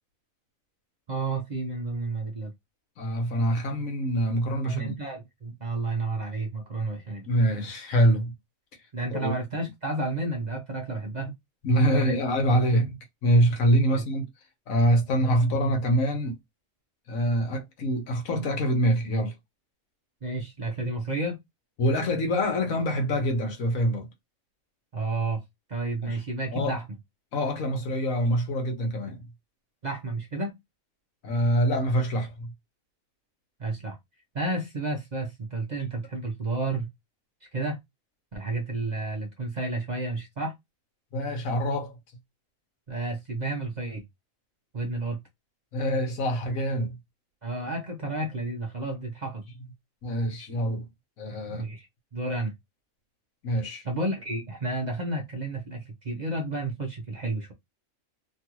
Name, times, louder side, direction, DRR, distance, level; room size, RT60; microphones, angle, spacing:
voice 1, 1.1-2.5 4.6-7.3 8.9-11.3 11.9-12.2 13.9-14.0 20.2-21.4 24.9-25.4 25.7-26.8 29.8-30.5 33.6-34.0 34.3-36.9 37.5-37.8 38.3-40.5 42.9-44.0 44.7-45.2 47.4-49.4 51.5-51.9 52.1-52.5 53.8-57.5, right 2 dB, 45° right, 0.6 m, -31 dB
voice 2, 3.0-5.0 7.3-8.3 9.1-9.3 11.6-14.3 14.7-16.3 17.1-19.3 21.8-24.1 26.0-26.2 26.5-26.8 27.3-29.2 31.2-32.5 41.1-42.0 45.7-46.9 50.0-50.9 51.2-51.7 53.4-53.8, equal, 75° left, 1.3 m, -25 dB
3.1 x 2.4 x 2.9 m
omnidirectional pair, 1.4 m